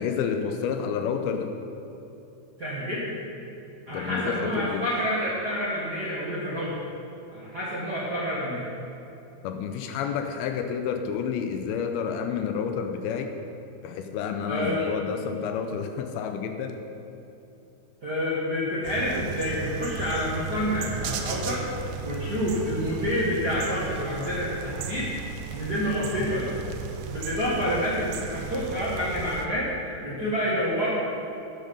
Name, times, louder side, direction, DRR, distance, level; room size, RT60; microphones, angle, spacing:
voice 1, 0.0-1.5 3.9-4.9 9.4-13.3 13.8-16.8, left 7 dB, 85° left, 6 dB, 2.5 m, -30 dB
voice 2, 2.6-3.1 3.9-6.8 7.3-8.7 14.5-14.8 18.0-21.6 22.0-25.1 25.5-26.6 27.1-30.9, equal, 40° right, -8 dB, 1.4 m, -28 dB
sound 1, 18.8-29.5, right 6 dB, 85° right, 2.7 m, -35 dB
13.5 x 9.2 x 5.4 m, 2.8 s
omnidirectional pair, 4.4 m